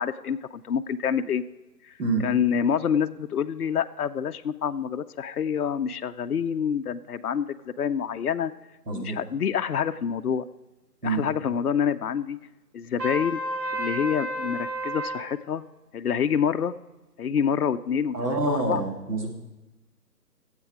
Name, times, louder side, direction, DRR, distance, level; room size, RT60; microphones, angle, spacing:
voice 1, 0.0-1.4 1.9-2.0 2.2-8.5 8.9-10.5 11.0-12.4 12.7-13.4 13.7-15.6 15.9-16.7 17.2-18.8, left 7 dB, 65° left, 9 dB, 0.6 m, -27 dB
voice 2, 2.0-2.3 8.9-9.2 11.0-11.2 18.1-19.3, right 3 dB, 70° right, 1 dB, 2.6 m, -27 dB
Trumpet, 13.0-15.2, equal, 90° right, 2.3 m, -31 dB
12.5 x 8.2 x 4.8 m, 1.1 s
figure-of-eight pair, 170°, 49 cm